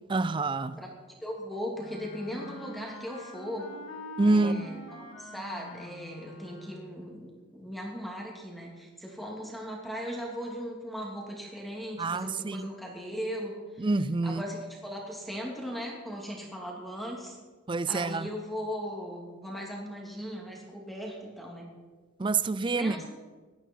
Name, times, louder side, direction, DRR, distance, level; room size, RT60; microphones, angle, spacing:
voice 1, 0.1-0.8 4.2-4.7 12.0-12.7 13.8-14.4 17.7-18.3 22.2-23.0, right 3 dB, 20° right, 0.4 m, -27 dB
voice 2, 1.2-3.7 4.3-13.9 14.2-17.4 17.9-21.7 22.7-23.1, equal, ahead, 2.8 m, -38 dB
Wind instrument woodwind instrument, 1.8-7.1, left 1 dB, 65° left, 2.5 m, -45 dB
19.0 x 13.0 x 4.6 m
head